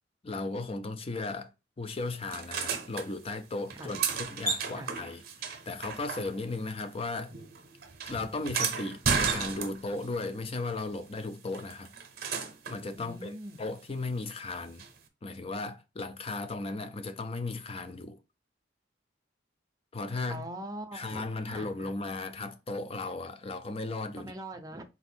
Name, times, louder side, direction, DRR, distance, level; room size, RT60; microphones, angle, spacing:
voice 1, 0.2-1.5 1.8-7.3 8.1-11.9 12.7-14.8 15.2-18.2 19.9-20.4 20.9-24.3, left 3 dB, 30° left, 0.5 m, -36 dB
sound 1, 2.3-3.1 3.7-6.6 6.9-10.1 11.5-12.8 14.8-14.9, right 5 dB, 55° right, 0.7 m, -33 dB
voice 2, 12.9-13.6 20.3-21.9 24.2-24.8, right 1 dB, 20° right, 0.6 m, -42 dB
4.0 x 2.6 x 4.3 m
head